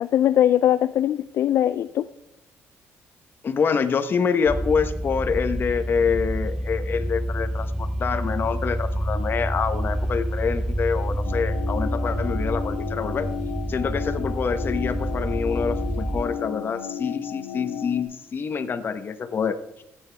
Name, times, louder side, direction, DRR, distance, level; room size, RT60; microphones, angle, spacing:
voice 1, 0.0-2.1, left 11 dB, 65° left, 13 dB, 0.3 m, -21 dB
voice 2, 3.4-13.3 13.7-19.8, left 6 dB, 40° left, 10 dB, 1.0 m, -26 dB
sound 1, 4.5-16.2, right 1 dB, 5° right, 0.6 m, -28 dB
sound 2, 11.2-18.0, left 8 dB, 80° left, 1.3 m, -33 dB
15.0 x 9.0 x 3.4 m, 0.89 s
cardioid pair, 110°, 5 cm